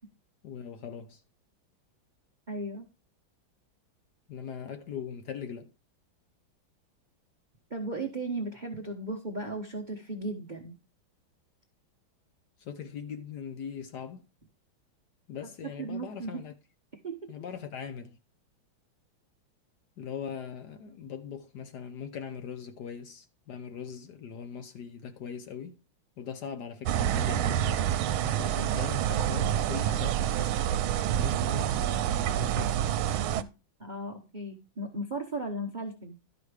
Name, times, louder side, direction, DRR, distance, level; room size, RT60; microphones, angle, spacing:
voice 1, 0.4-1.2 4.3-5.7 12.6-14.2 15.3-16.5 17.3-18.2 20.0-25.8 26.2-30.6 31.1-32.9, left 7 dB, 60° left, 1.3 m, -41 dB
voice 2, 2.5-2.9 7.7-10.7 15.8-16.4 17.0-17.3 33.4-33.5 33.8-36.1, right 2 dB, 35° right, 0.8 m, -36 dB
sound 1, 26.9-33.4, right 11 dB, 85° right, 1.5 m, -27 dB
12.0 x 5.1 x 4.8 m
omnidirectional pair, 2.2 m